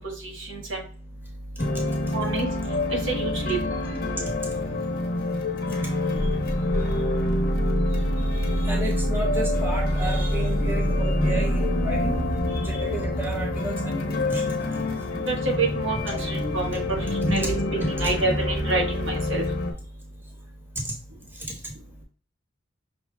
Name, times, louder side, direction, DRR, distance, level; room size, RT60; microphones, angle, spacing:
voice 1, 0.2-0.8 2.1-2.5 3.1-3.6 15.3-16.8 17.3-17.5 17.9-19.4, right 3 dB, 70° right, -1 dB, 1.3 m, -27 dB
sound 1, 1.6-19.7, left 1 dB, 50° left, 0.9 m, -26 dB
voice 2, 8.2-12.2 12.6-14.6 16.1-16.2 17.2-17.3 17.8-17.9, right 1 dB, 10° right, -1 dB, 1.2 m, -32 dB
5.9 x 2.3 x 3.3 m, 0.41 s
head